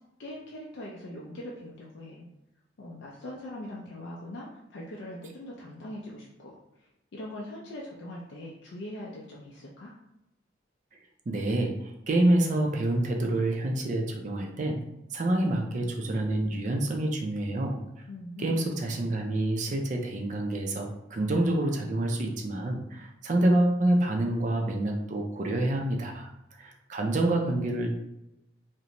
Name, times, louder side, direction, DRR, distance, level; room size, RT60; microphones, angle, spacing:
voice 1, 0.2-2.3 2.8-9.9 18.1-18.6, left 1 dB, 70° left, -3 dB, 0.4 m, -41 dB
voice 2, 11.3-14.8 15.1-17.8 18.4-26.3 26.6-27.9, right 1 dB, 40° right, 2 dB, 0.4 m, -27 dB
2.5 x 2.1 x 2.8 m, 0.86 s
head